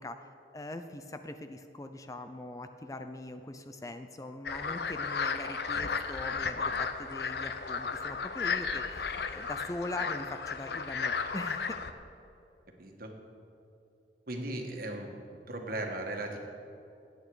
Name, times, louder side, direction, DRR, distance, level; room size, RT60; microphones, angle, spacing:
voice 1, 0.0-11.8, left 2 dB, 20° left, 8 dB, 0.5 m, -42 dB
sound 1, 4.5-11.9, left 5 dB, 65° left, 0.7 m, -34 dB
voice 2, 12.8-13.1 14.3-15.1 15.5-16.4, right 1 dB, 55° right, 2 dB, 1.6 m, -37 dB
18.0 x 9.1 x 4.8 m, 2.7 s
head